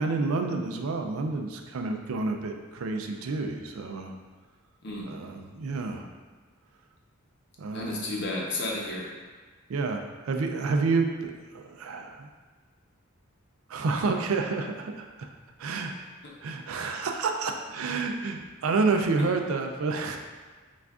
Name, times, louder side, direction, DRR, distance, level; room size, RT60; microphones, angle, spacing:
voice 1, 0.0-4.1 5.1-6.1 7.6-8.0 9.7-12.3 13.7-15.3 15.6-15.9 16.4-20.2, right 3 dB, 75° right, 4 dB, 0.4 m, -29 dB
voice 2, 7.7-9.1 16.2-16.3 19.2-19.3, left 2 dB, 55° left, -3 dB, 0.8 m, -32 dB
5.7 x 2.4 x 2.4 m, 1.4 s
head